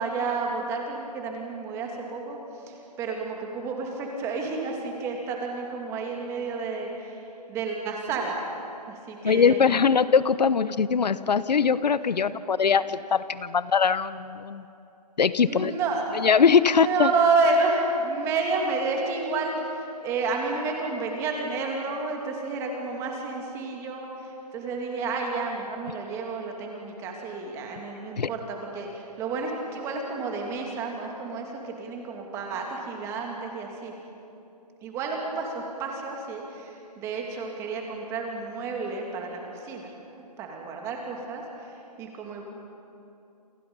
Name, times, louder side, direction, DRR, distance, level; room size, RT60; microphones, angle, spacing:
voice 1, 0.0-2.4 2.7-7.2 7.5-8.5 8.8-9.6 15.4-16.0 16.6-33.9 34.8-39.9 40.4-42.4, right 3 dB, 15° right, 1 dB, 2.6 m, -30 dB
voice 2, 9.2-14.6 15.2-15.7 16.2-17.1 28.2-28.3, left 6 dB, 80° left, 15 dB, 0.9 m, -21 dB
29.0 x 25.0 x 5.5 m, 2.8 s
hypercardioid pair, 165°, 21 cm